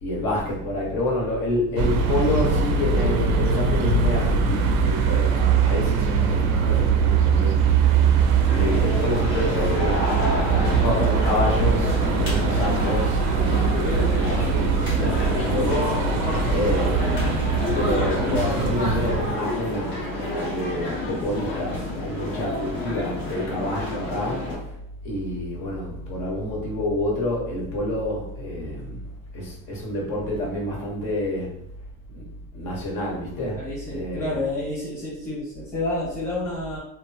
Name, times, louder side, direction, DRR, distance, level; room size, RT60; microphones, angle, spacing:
voice 1, 0.0-7.8 8.5-16.0 16.5-24.4 25.0-29.0 29.3-31.5 32.1-32.2 32.5-34.4, left 1 dB, 45° left, -2 dB, 1.0 m, -28 dB
sound 1, 1.8-19.3, right 5 dB, 80° right, 0.6 m, -22 dB
sound 2, 8.5-24.6, left 2 dB, 25° left, 0.8 m, -29 dB
voice 2, 33.6-36.8, left 2 dB, 5° left, -9 dB, 1.2 m, -29 dB
3.0 x 2.0 x 2.6 m, 0.75 s
cardioid pair, 160°, 42 cm